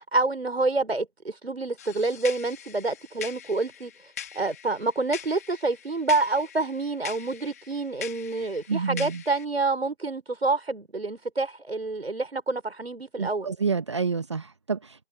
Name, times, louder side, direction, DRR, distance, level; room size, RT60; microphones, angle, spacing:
voice 1, 0.0-13.5, right 3 dB, 90° right, 6.1 m, -28 dB
sound 1, 1.8-9.5, left 9 dB, 15° left, 2.6 m, -42 dB
voice 2, 8.7-9.2 13.2-15.0, right 5 dB, 30° right, 1.5 m, -28 dB
figure-of-eight pair, 175°, 31 cm